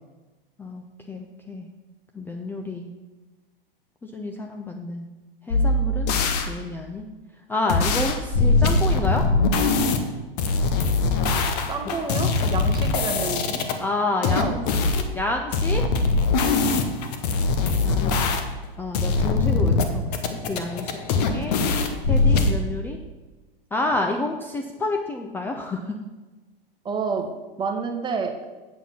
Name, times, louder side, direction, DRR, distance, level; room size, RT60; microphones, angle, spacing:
voice 1, 0.6-1.7 2.1-2.9 4.0-5.1 5.5-6.1 6.5-7.1 7.5-9.3 13.8-14.6 15.1-15.8 17.8-18.3 18.8-21.5 22.1-23.0 23.7-26.0, left 2 dB, 5° left, 2 dB, 0.5 m, -29 dB
sound 1, 5.5-6.5 7.7-10.0 10.4-13.7 14.2-15.1 15.5-18.7 18.9-19.8 20.1-22.5, left 3 dB, 45° left, 1.1 m, -21 dB
voice 2, 11.7-13.6 14.3-14.6 16.6-16.9 22.3-22.4 26.8-27.3 27.6-28.4, right 5 dB, 15° right, 4 dB, 1.1 m, -29 dB
8.3 x 7.1 x 5.7 m, 1.2 s
figure-of-eight pair, 100°, 29 cm